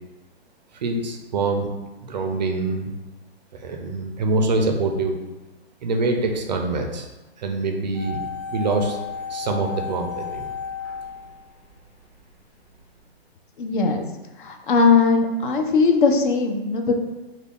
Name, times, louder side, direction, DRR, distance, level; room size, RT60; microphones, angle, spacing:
voice 1, 0.8-1.7 2.1-2.9 3.6-5.2 5.8-7.1 7.4-8.2 8.5-9.0 9.3-10.4, right 3 dB, 45° right, 4 dB, 0.4 m, -24 dB
sound 1, 7.9-12.1 12.3-12.4, left 6 dB, 30° left, 1.1 m, -33 dB
voice 2, 13.6-14.0 14.4-17.0, left 4 dB, 50° left, 4 dB, 0.5 m, -19 dB
3.3 x 2.2 x 3.5 m, 1.1 s
hypercardioid pair, 155°, 32 cm